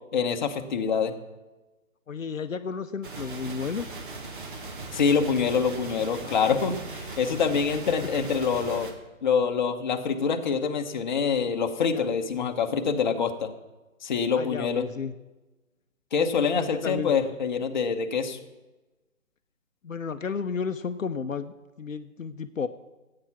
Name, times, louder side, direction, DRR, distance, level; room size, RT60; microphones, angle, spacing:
voice 1, 0.1-1.1 4.9-8.9 9.2-13.5 14.0-14.9 16.1-18.4, left 6 dB, 35° left, 5 dB, 1.0 m, -25 dB
voice 2, 2.1-3.9 6.2-6.4 7.6-7.8 11.9-12.1 12.3-12.5 14.3-15.1 16.5-17.1 19.8-22.7, left 5 dB, 70° left, 9 dB, 0.8 m, -33 dB
sound 1, 3.0-8.9, right 3 dB, 35° right, 1.7 m, -39 dB
14.5 x 8.8 x 5.9 m, 1.1 s
figure-of-eight pair, 145°, 41 cm